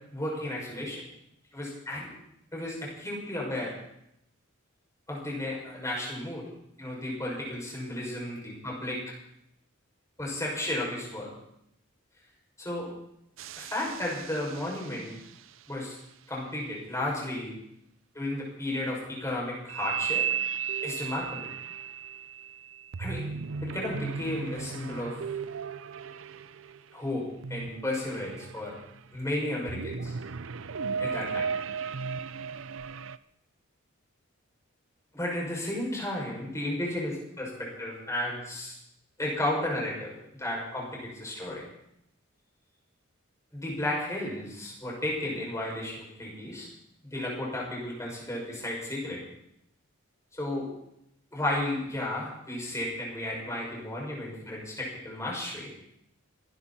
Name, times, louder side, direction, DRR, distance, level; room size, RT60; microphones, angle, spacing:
voice 1, 0.1-1.0 1.5-2.1 2.5-3.7 5.1-6.4 6.8-9.0 10.2-11.3 12.6-12.9 13.6-15.1 15.7-16.0 16.3-17.5 18.1-20.3 20.8-21.4 23.0-23.2 23.6-25.2 26.9-28.7 29.1-30.2 31.0-31.5 35.1-38.8 39.2-41.6 43.5-46.7 47.0-49.2 50.3-50.7 51.3-55.7, left 1 dB, 15° left, -3 dB, 6.3 m, -33 dB
sound 1, 13.4-15.3 19.7-27.0 27.4-29.1 29.7-33.2, right 6 dB, 65° right, 0.6 m, -35 dB
26.0 x 11.5 x 4.3 m, 0.78 s
head